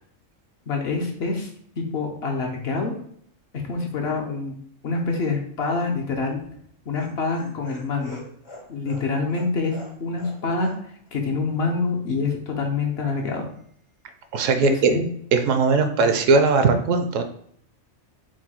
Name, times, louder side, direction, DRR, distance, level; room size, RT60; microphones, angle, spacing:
voice 1, 0.7-1.5 1.8-2.9 3.5-4.6 4.8-6.4 6.9-8.2 8.7-13.5 14.6-15.0, left 4 dB, 60° left, 2 dB, 0.8 m, -26 dB
Laughter, 6.4-10.4 10.6-10.8 11.1-11.2, left 1 dB, 85° left, 2.1 m, -43 dB
voice 2, 14.3-14.9 15.3-17.2, right 4 dB, 75° right, 7 dB, 0.9 m, -19 dB
4.6 x 2.2 x 4.3 m, 0.64 s
omnidirectional pair, 1.4 m